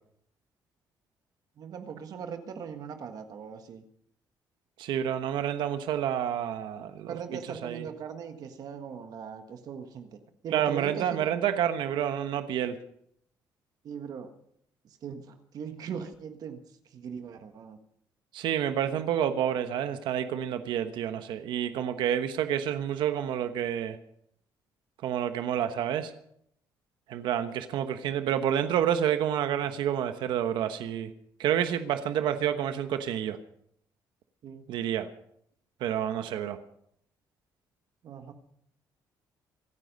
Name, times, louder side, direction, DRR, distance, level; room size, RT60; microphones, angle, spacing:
voice 1, 1.6-3.8 6.9-10.1 10.4-11.3 13.8-14.3 14.8-16.6 16.8-17.8 34.4-34.7 38.0-38.3, right 7 dB, 55° right, 7 dB, 1.6 m, -40 dB
voice 2, 4.8-7.2 7.6-7.8 10.5-12.8 18.3-24.0 25.0-26.1 27.1-31.1 31.4-33.4 34.7-35.1 35.8-36.6, right 10 dB, 85° right, 9 dB, 1.1 m, -29 dB
26.5 x 9.5 x 5.3 m, 0.70 s
cardioid pair, 165°, 8 cm